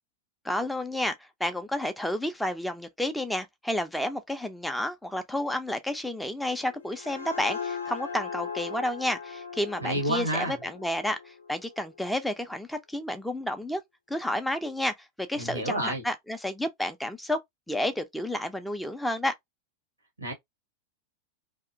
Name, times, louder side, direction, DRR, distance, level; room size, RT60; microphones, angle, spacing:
voice 1, 0.4-1.2 1.4-13.8 14.1-14.9 15.3-17.4 17.7-19.3, left 1 dB, 5° left, 0.4 m, -31 dB
sound 1, 6.6-12.1, left 5 dB, 70° left, 0.5 m, -39 dB
voice 2, 9.8-10.6 15.4-16.0 20.2-20.3, right 1 dB, 85° right, 0.7 m, -29 dB
2.4 x 2.1 x 2.5 m
figure-of-eight pair, 90°, 0 cm